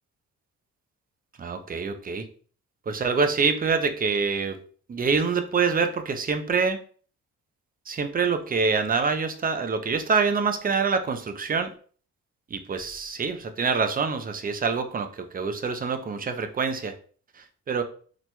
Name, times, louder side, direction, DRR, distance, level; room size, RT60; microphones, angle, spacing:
voice 1, 1.4-2.3 2.9-4.6 4.9-6.8 7.9-11.7 12.5-16.9 17.4-17.8, right 5 dB, 30° right, 8 dB, 0.5 m, -26 dB
4.2 x 3.0 x 2.2 m, 0.43 s
cardioid pair, 90°, 30 cm